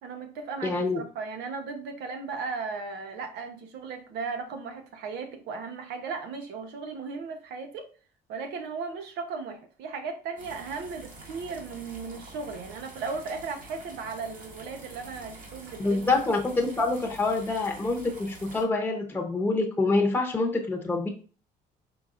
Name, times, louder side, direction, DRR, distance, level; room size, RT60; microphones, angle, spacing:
voice 1, 0.0-7.9 8.3-16.2, right 4 dB, 80° right, 6 dB, 0.9 m, -36 dB
voice 2, 0.6-1.0 15.8-21.1, left 3 dB, 10° left, 0 dB, 0.8 m, -26 dB
sound 1, 10.4-18.6, right 2 dB, 50° right, 1.8 m, -47 dB
5.1 x 3.6 x 2.5 m, 0.39 s
cardioid pair, 110°, 17 cm